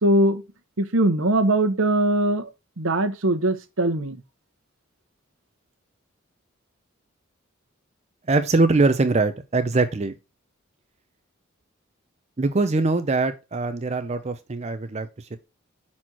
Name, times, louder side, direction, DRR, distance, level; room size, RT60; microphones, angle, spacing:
voice 1, 0.0-0.4 0.8-2.5 2.8-4.2, right 1 dB, 75° right, 1.0 m, -21 dB
voice 2, 8.3-10.1 12.4-15.4, right 3 dB, 30° right, 0.5 m, -22 dB
6.1 x 4.3 x 4.3 m
head